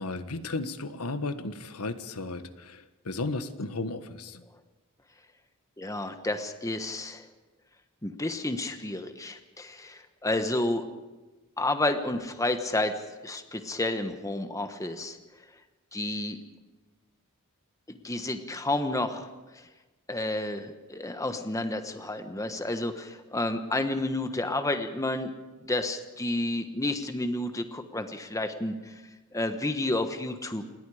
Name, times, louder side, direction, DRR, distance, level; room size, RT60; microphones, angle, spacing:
voice 1, 0.0-4.4, left 3 dB, 85° left, 10 dB, 1.4 m, -34 dB
voice 2, 5.8-7.3 8.0-10.8 11.6-15.2 15.9-16.4 17.9-19.3 19.5-19.6 20.1-25.3 25.7-29.0 29.3-30.6, left 2 dB, 15° left, 8 dB, 1.3 m, -30 dB
27.5 x 20.5 x 5.0 m, 1.2 s
head